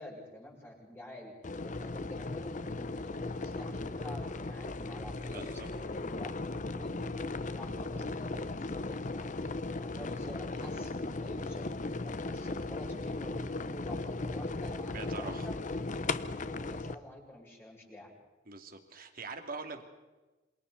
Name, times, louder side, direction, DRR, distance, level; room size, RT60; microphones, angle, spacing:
voice 1, 0.0-1.3 1.6-11.6 12.0-15.6 16.1-18.1, left 1 dB, 15° left, -4 dB, 8.0 m, -49 dB
sound 1, 1.4-16.9, left 3 dB, 40° left, 0.9 m, -37 dB
voice 2, 5.3-5.7 14.9-15.5 18.5-19.8, right 4 dB, 50° right, 5 dB, 2.7 m, -43 dB
28.0 x 27.0 x 4.2 m, 1.2 s
head